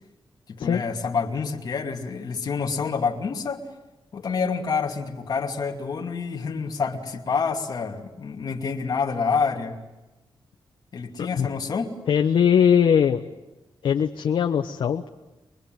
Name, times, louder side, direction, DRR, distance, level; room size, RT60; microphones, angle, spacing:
voice 1, 0.5-3.6 4.1-9.8 10.9-11.9, left 5 dB, 50° left, 2 dB, 2.6 m, -27 dB
voice 2, 11.2-11.5 12.1-13.2 13.8-15.1, left 8 dB, 80° left, 4 dB, 1.2 m, -20 dB
24.0 x 23.0 x 9.2 m, 1.0 s
wide cardioid pair, 175°, 9 cm